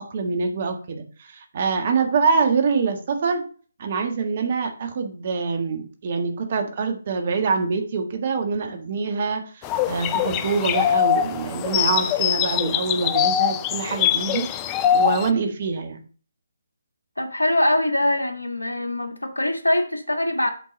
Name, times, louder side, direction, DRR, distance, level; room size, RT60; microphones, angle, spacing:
voice 1, 0.1-3.4 3.8-16.0, right 5 dB, 40° right, 5 dB, 1.5 m, -25 dB
sound 1, 9.6-15.3, left 10 dB, 20° left, 0.4 m, -23 dB
voice 2, 17.2-20.5, left 1 dB, 80° left, 5 dB, 1.6 m, -23 dB
8.5 x 4.5 x 5.2 m, 0.40 s
figure-of-eight pair, 145°, 0 cm